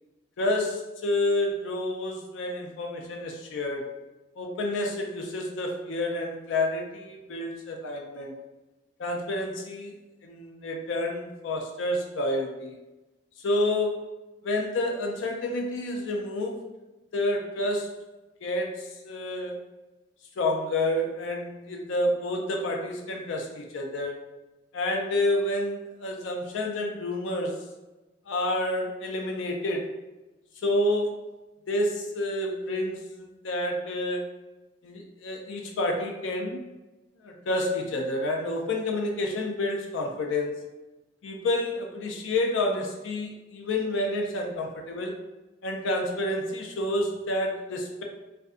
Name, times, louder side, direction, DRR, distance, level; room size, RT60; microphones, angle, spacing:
voice 1, 0.4-3.8 4.4-8.3 9.0-9.9 10.2-12.8 13.4-14.1 14.4-16.6 17.1-18.0 18.4-19.6 20.4-24.2 24.7-27.6 28.3-29.9 30.6-31.2 31.7-34.3 34.8-36.6 37.2-40.6 41.2-45.2 45.6-48.0, left 1 dB, 85° left, 1 dB, 0.4 m, -29 dB
2.5 x 2.2 x 2.4 m, 1.1 s
head